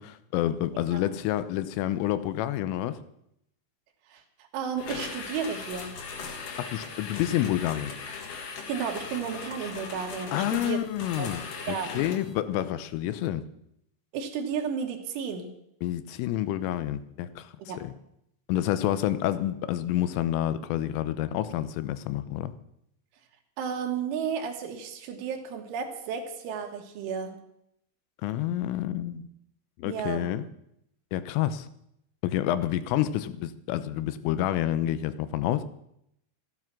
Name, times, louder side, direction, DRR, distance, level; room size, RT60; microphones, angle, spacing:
voice 1, 0.0-3.0 6.6-7.9 10.3-13.4 15.8-17.5 17.8-17.9 18.5-22.5 28.2-29.3 29.8-30.5 31.1-31.7 32.2-35.7, left 12 dB, 90° left, 13 dB, 3.4 m, -28 dB
voice 2, 4.5-5.9 8.7-10.8 11.2-11.3 11.7-12.1 14.1-15.5 17.7-17.8 23.6-27.4 29.9-30.3, right 7 dB, 75° right, 3 dB, 3.8 m, -33 dB
sound 1, 4.8-12.3, left 5 dB, 55° left, 2.6 m, -39 dB
14.0 x 12.0 x 6.0 m, 0.77 s
omnidirectional pair, 5.7 m